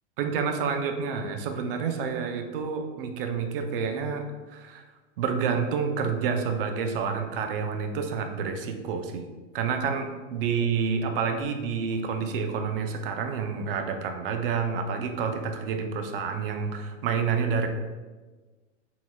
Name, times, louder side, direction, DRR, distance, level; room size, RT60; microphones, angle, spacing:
voice 1, 0.2-4.3 4.5-4.8 5.2-9.3 9.5-17.7, right 6 dB, 45° right, 5 dB, 0.6 m, -29 dB
6.1 x 3.8 x 2.3 m, 1.3 s
hypercardioid pair, 145°, 38 cm